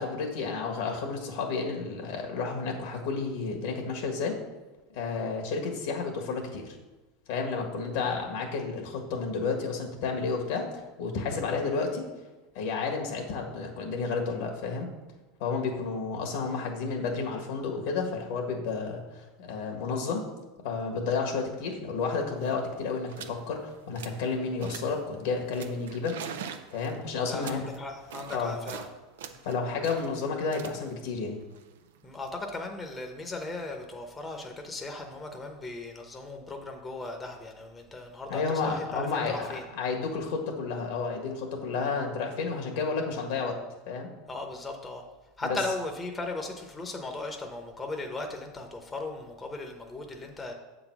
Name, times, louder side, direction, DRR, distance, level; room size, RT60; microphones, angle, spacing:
voice 1, 0.0-4.4 4.9-6.8 7.3-10.7 11.0-12.0 12.5-14.9 15.4-20.2 20.6-26.2 26.7-27.7 28.3-28.5 29.4-31.4 38.3-39.5 39.7-43.6 43.9-44.1 45.4-45.6, left 4 dB, 75° left, 2 dB, 1.6 m, -31 dB
sound 1, 22.1-22.2 22.3-22.6 23.1-23.4 23.7-24.3 24.6-25.1 25.5-28.9 29.2-32.2, right 7 dB, 90° right, 0.6 m, -44 dB
voice 2, 27.3-28.9 29.3-29.4 32.0-39.6 44.3-45.0 45.4-50.5, left 2 dB, 15° left, 3 dB, 0.9 m, -37 dB
7.3 x 4.0 x 6.0 m, 1.2 s
supercardioid pair, 115°, 0 cm